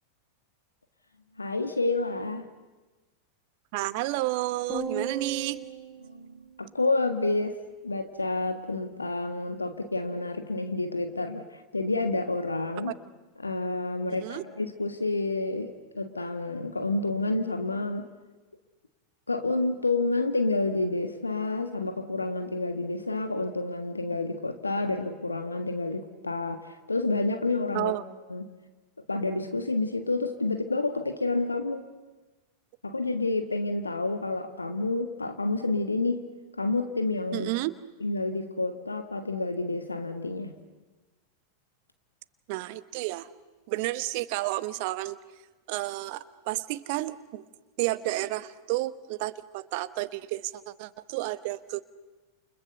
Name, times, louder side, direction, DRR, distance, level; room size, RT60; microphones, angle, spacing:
voice 1, 1.4-2.5 6.0-7.6 7.8-12.9 13.4-18.1 19.3-27.9 28.3-28.5 29.1-31.8 32.8-36.2 36.6-37.5 38.0-40.5, left 2 dB, 80° left, 8 dB, 1.6 m, -29 dB
voice 2, 3.7-5.6 12.9-13.0 14.2-14.4 27.7-28.0 37.3-37.7 42.5-43.3 43.7-45.2 45.7-47.5 47.8-51.8, right 18 dB, 45° right, 14 dB, 1.0 m, -31 dB
sound 1, 4.7-7.1, right 4 dB, 20° right, 3.2 m, -37 dB
30.0 x 29.5 x 6.8 m, 1.2 s
figure-of-eight pair, 90°, 0 cm